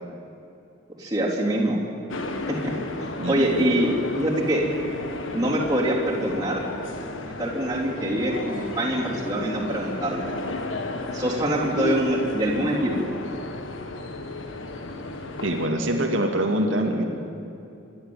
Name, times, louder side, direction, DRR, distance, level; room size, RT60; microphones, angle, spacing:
voice 1, 1.0-1.8 2.5-4.6 5.3-6.7 7.4-10.3 11.1-13.1, right 1 dB, 20° right, -5 dB, 3.7 m, -25 dB
sound 1, 2.1-15.7, left 2 dB, 85° left, 1.6 m, -33 dB
voice 2, 15.4-17.0, right 1 dB, 80° right, 1 dB, 2.3 m, -24 dB
26.5 x 11.0 x 9.0 m, 2.7 s
head